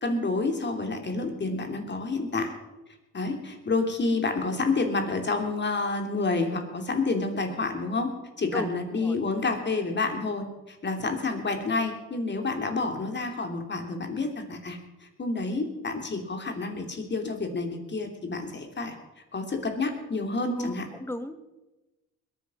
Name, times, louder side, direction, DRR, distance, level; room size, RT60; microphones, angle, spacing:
voice 1, 0.0-2.5 3.1-8.1 8.4-18.9 19.3-20.9, left 3 dB, 35° left, 5 dB, 3.0 m, -29 dB
voice 2, 20.6-21.4, left 1 dB, 10° left, 10 dB, 1.4 m, -35 dB
21.0 x 9.3 x 6.3 m, 1.1 s
cardioid pair, 90°, 30 cm